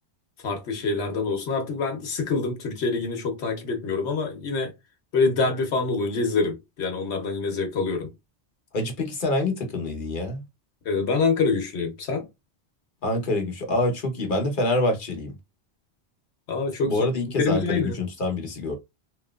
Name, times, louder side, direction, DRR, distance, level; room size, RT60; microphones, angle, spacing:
voice 1, 0.4-4.7 5.1-8.1 10.8-12.3 16.5-18.0, left 4 dB, 85° left, 1.1 m, -26 dB
voice 2, 8.7-10.4 13.0-15.3 16.8-18.8, left 2 dB, 50° left, 1.1 m, -26 dB
3.0 x 2.8 x 2.3 m
omnidirectional pair, 1.1 m